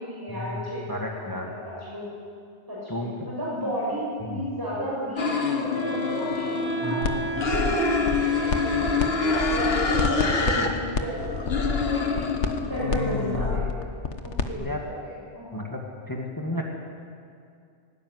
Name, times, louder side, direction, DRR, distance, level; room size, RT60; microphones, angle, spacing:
voice 1, 0.0-0.8 1.2-2.1 2.7-12.3 12.7-13.6 14.2-15.7, equal, 20° right, -7 dB, 6.7 m, -33 dB
voice 2, 0.9-1.5 2.9-3.1 4.2-4.4 6.8-7.2 10.6-10.7 14.6-14.8 15.5-15.8 16.1-16.6, left 1 dB, 15° left, -1 dB, 2.0 m, -32 dB
sound 1, 5.2-7.0 7.4-10.7 11.0-13.6, left 4 dB, 60° left, 1.7 m, -27 dB
Wind instrument woodwind instrument, 5.7-9.8, right 2 dB, 35° left, 3.0 m, -32 dB
sound 2, 7.0-7.2 7.5-9.1 9.3-14.5, left 5 dB, 85° left, 1.6 m, -28 dB
18.5 x 17.0 x 9.6 m, 2.3 s
omnidirectional pair, 1.2 m